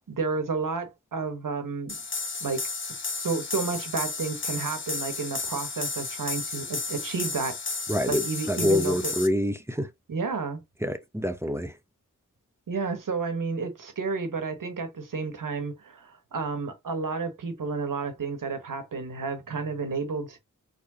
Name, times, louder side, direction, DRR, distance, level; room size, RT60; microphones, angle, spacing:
voice 1, 0.1-2.0 2.4-2.6 2.9-7.6 8.1-9.1 10.1-10.6 12.7-20.4, right 4 dB, 85° right, 1.2 m, -31 dB
sound 1, 1.9-9.3, left 4 dB, 40° left, 0.9 m, -33 dB
voice 2, 7.9-9.9 10.8-11.8, left 1 dB, 10° right, 0.7 m, -27 dB
4.4 x 3.4 x 2.8 m
wide cardioid pair, 60°, 32 cm